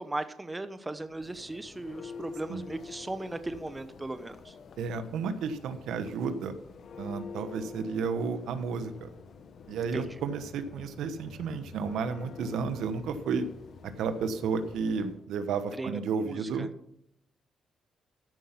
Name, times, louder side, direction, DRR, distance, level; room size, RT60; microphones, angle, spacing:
voice 1, 0.0-4.5 9.9-10.1 15.8-16.7, right 2 dB, 15° right, 11 dB, 0.8 m, -37 dB
Church bell, 1.0-15.3, left 5 dB, 55° left, 0.9 m, -48 dB
voice 2, 4.8-6.5 7.0-9.1 9.7-13.4 14.0-16.7, right 5 dB, 80° right, 9 dB, 1.1 m, -32 dB
14.0 x 5.8 x 5.7 m, 0.75 s
cardioid pair, 90°, 0 cm